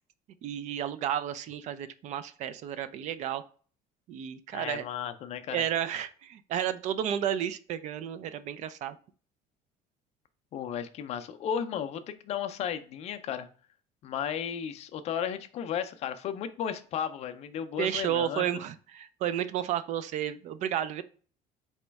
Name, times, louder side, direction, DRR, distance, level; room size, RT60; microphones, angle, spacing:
voice 1, 0.4-3.4 4.1-4.8 5.5-9.0 17.8-21.0, right 10 dB, 50° right, 13 dB, 0.4 m, -32 dB
voice 2, 4.5-5.6 10.5-13.5 14.0-18.4, left 8 dB, 45° left, 9 dB, 0.4 m, -34 dB
4.2 x 3.0 x 3.4 m, 0.41 s
cardioid pair, 160°, 15 cm